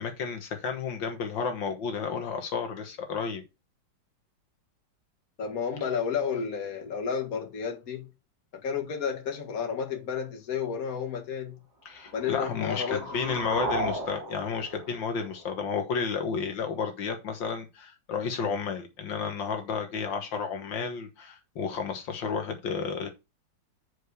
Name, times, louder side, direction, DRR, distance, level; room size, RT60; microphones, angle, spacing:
voice 1, 0.0-3.4 11.9-23.1, left 6 dB, 85° left, 2.0 m, -32 dB
voice 2, 5.4-8.1 8.5-11.6 12.1-13.4, left 6 dB, 50° left, 2.1 m, -32 dB
sound 1, 12.0-16.0, right 1 dB, 40° right, 2.0 m, -36 dB
6.5 x 4.9 x 6.8 m
omnidirectional pair, 2.0 m